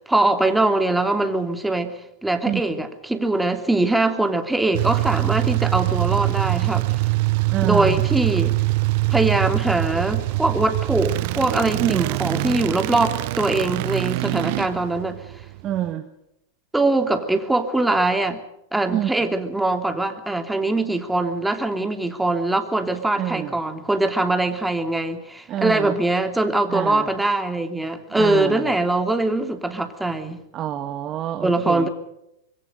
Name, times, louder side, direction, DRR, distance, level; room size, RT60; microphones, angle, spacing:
voice 1, 0.0-6.9 7.6-8.6 9.1-15.2 16.7-18.4 18.7-30.4 31.4-31.9, right 2 dB, 5° right, 6 dB, 3.0 m, -22 dB
sound 1, 4.7-15.9, right 21 dB, 55° right, 0.7 m, -23 dB
voice 2, 7.5-8.0 11.8-12.1 15.6-16.0 18.9-19.1 23.2-23.5 25.5-25.9 26.7-27.1 28.1-28.6 30.5-31.9, right 12 dB, 35° right, 6 dB, 1.8 m, -26 dB
26.0 x 22.0 x 5.3 m, 0.80 s
hypercardioid pair, 115°, 0 cm